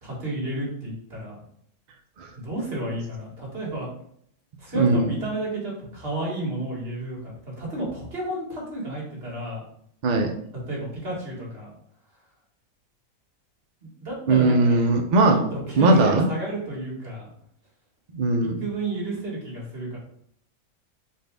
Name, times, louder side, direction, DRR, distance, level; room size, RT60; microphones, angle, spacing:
voice 1, 0.0-1.4 2.4-3.9 4.6-9.6 10.7-11.7 14.0-14.8 15.3-17.3 18.6-20.0, right 1 dB, 45° right, -4 dB, 1.8 m, -31 dB
voice 2, 4.7-5.1 10.0-10.3 14.3-15.4 15.8-16.3 18.1-18.6, right 2 dB, 75° right, 4 dB, 0.4 m, -19 dB
4.1 x 3.5 x 3.4 m, 0.67 s
omnidirectional pair, 1.5 m